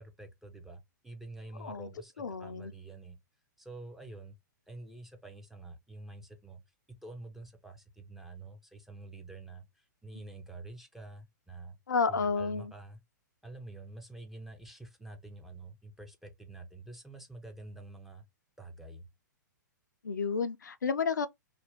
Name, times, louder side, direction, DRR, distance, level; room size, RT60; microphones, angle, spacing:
voice 1, 0.0-3.2 3.6-4.4 4.7-6.6 7.0-11.8 12.1-13.0 13.4-18.2 18.6-19.1, right 2 dB, ahead, 0.5 m, -48 dB
voice 2, 2.2-2.7 11.9-12.7 20.0-21.3, left 5 dB, 70° left, 0.4 m, -31 dB
2.5 x 2.1 x 3.2 m
figure-of-eight pair, 110°, 10 cm